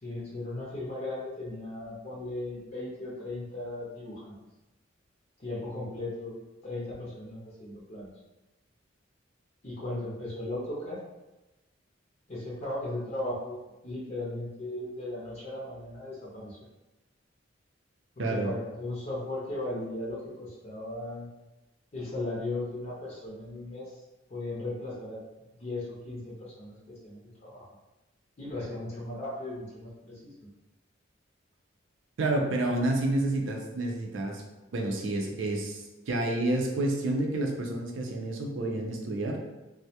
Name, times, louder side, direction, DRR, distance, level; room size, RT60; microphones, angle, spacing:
voice 1, 0.0-4.3 5.4-6.4 6.6-8.1 9.6-11.0 12.3-16.6 18.2-21.3 21.9-23.9 24.3-25.2 25.6-27.7 28.4-30.3, left 2 dB, 35° left, -6 dB, 0.5 m, -37 dB
voice 2, 18.2-18.5 32.2-34.4 34.7-39.5, right 2 dB, 80° right, 2 dB, 0.5 m, -29 dB
2.2 x 2.0 x 2.7 m, 1.0 s
head